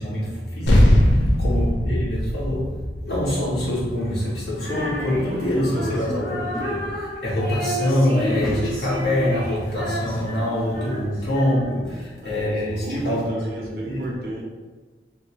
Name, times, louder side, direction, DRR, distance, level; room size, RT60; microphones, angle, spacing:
voice 1, 0.0-14.3, left 1 dB, 65° left, -8 dB, 1.3 m, -25 dB
sound 1, 0.7-5.4, left 1 dB, 85° left, 0.5 m, -21 dB
sound 2, 3.5-11.0, equal, 5° left, 0.4 m, -39 dB
Female singing, 4.6-11.9, left 1 dB, 45° left, 1.1 m, -32 dB
voice 2, 5.3-6.1 12.2-14.4, right 1 dB, 60° right, -3 dB, 0.7 m, -32 dB
2.8 x 2.7 x 2.8 m, 1.3 s
head